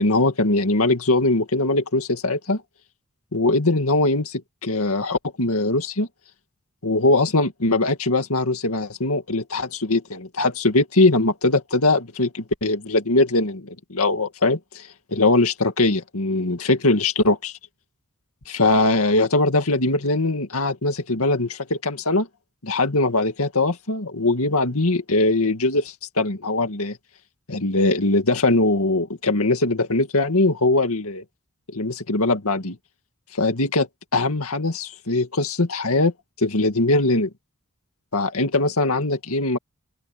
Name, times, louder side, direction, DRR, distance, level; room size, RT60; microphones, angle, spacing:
voice 1, 0.0-2.6 3.3-6.1 6.8-17.6 18.5-22.3 22.6-27.0 27.5-31.2 31.7-32.8 33.3-33.9 34.1-37.3 38.1-39.6, left 2 dB, 75° left, 2.2 m, -21 dB
open air
head